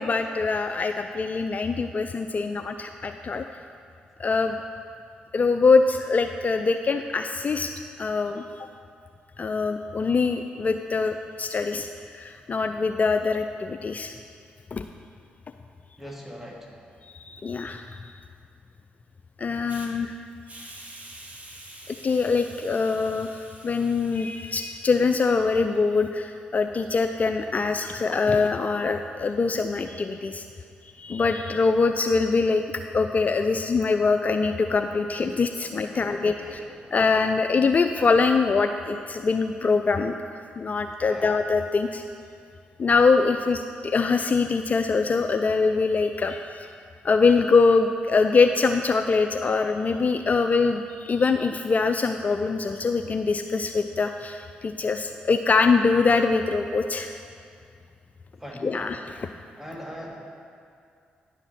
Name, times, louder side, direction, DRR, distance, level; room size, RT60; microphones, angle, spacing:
voice 1, 0.0-3.4 4.2-4.6 5.3-7.7 8.0-8.7 9.4-14.1 14.7-14.8 17.1-18.1 19.4-20.1 22.0-30.4 31.0-32.6 32.9-36.6 36.9-40.1 40.6-42.0 42.8-46.7 47.0-57.2 58.6-59.3, left 4 dB, 40° left, 6 dB, 0.4 m, -23 dB
voice 2, 16.0-16.7 35.6-36.9 41.1-41.4 58.4-59.0 59.6-60.2, equal, 10° right, -3 dB, 2.3 m, -41 dB
Hiss, 19.7-19.9 20.5-25.6, right 1 dB, 35° right, 1.5 m, -47 dB
10.5 x 4.9 x 5.8 m, 2.4 s
hypercardioid pair, 45°, 4 cm